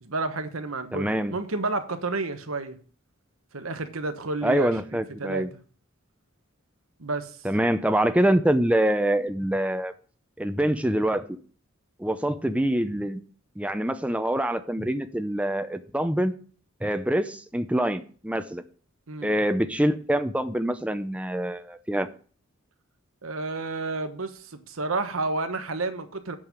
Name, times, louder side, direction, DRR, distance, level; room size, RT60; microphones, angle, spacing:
voice 1, 0.0-2.8 3.5-5.5 7.0-7.4 19.1-19.3 23.2-26.4, right 3 dB, 85° right, 1.2 m, -31 dB
voice 2, 0.9-1.4 4.4-5.5 7.4-9.9 10.4-11.2 12.0-13.2 13.6-16.3 16.8-18.6 19.2-22.1, right 1 dB, 5° right, 0.6 m, -25 dB
8.7 x 5.5 x 7.4 m
head